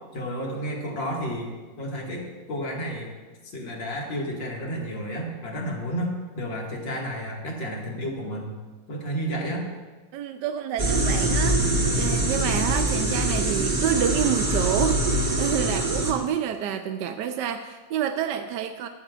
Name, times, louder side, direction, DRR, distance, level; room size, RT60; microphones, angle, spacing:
voice 1, 0.1-1.5 1.8-3.1 3.4-8.5 8.9-9.6, equal, 90° left, -1 dB, 2.8 m, -31 dB
voice 2, 10.1-11.6 11.9-18.9, right 9 dB, 75° right, 7 dB, 1.2 m, -28 dB
sound 1, 10.8-16.1, right 1 dB, 30° right, 1.5 m, -24 dB
17.5 x 13.5 x 2.5 m, 1.3 s
omnidirectional pair, 2.0 m